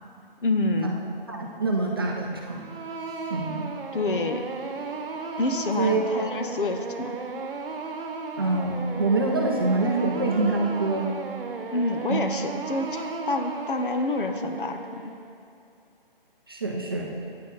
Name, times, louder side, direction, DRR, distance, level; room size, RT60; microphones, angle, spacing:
voice 1, 0.4-1.0 3.9-4.5 5.4-7.2 11.7-15.1, left 2 dB, 60° left, 7 dB, 0.8 m, -27 dB
voice 2, 1.3-2.6 3.3-3.6 5.8-6.0 8.4-11.1 12.1-12.2 16.5-17.1, right 3 dB, 25° right, -1 dB, 0.6 m, -25 dB
sound 1, 2.5-15.4, right 4 dB, 65° right, 1.0 m, -35 dB
10.0 x 9.3 x 4.0 m, 2.5 s
hypercardioid pair, 175°, 29 cm